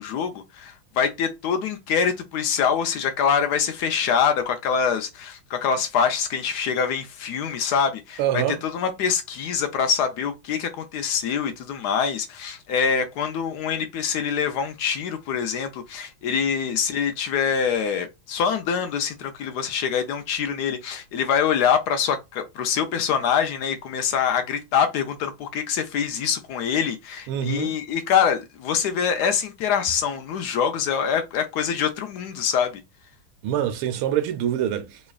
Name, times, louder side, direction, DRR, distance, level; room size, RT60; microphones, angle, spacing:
voice 1, 0.0-32.7, left 7 dB, 85° left, 0.8 m, -24 dB
voice 2, 8.2-8.6 27.3-27.7 33.4-35.0, right 10 dB, 85° right, 1.5 m, -25 dB
4.1 x 3.0 x 2.4 m
omnidirectional pair, 2.3 m